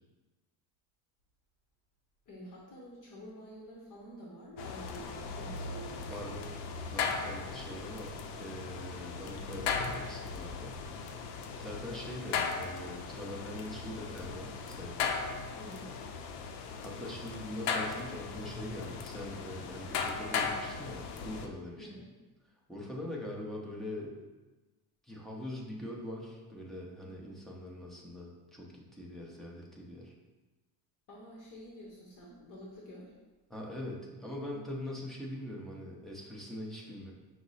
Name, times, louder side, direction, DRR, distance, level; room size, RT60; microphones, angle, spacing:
voice 1, 2.3-6.4 15.6-15.9 21.8-22.1 31.1-33.2, equal, 45° left, -4 dB, 0.9 m, -49 dB
sound 1, 4.6-21.5, left 5 dB, 75° left, 0.6 m, -37 dB
voice 2, 6.1-6.5 6.9-10.8 11.6-15.2 16.8-21.9 22.7-24.2 25.1-30.1 33.5-37.1, left 1 dB, ahead, -3 dB, 0.6 m, -42 dB
5.8 x 2.1 x 4.0 m, 1.2 s
cardioid pair, 130°, 43 cm